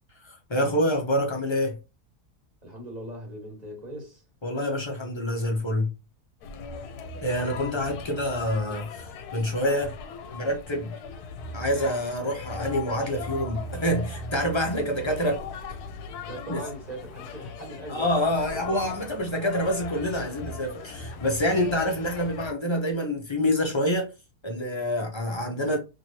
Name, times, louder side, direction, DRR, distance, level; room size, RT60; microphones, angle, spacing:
voice 1, 0.2-1.8 4.4-5.9 7.2-10.0 10.3-10.9 11.5-15.4 16.5-16.6 17.9-24.1 24.4-25.8, equal, 40° left, 0.4 m, -27 dB
voice 2, 2.6-4.3 16.3-18.6, right 1 dB, 30° right, 1.3 m, -40 dB
sound 1, 6.4-22.5, left 3 dB, 80° left, 1.1 m, -38 dB
3.0 x 2.9 x 2.7 m
omnidirectional pair, 1.7 m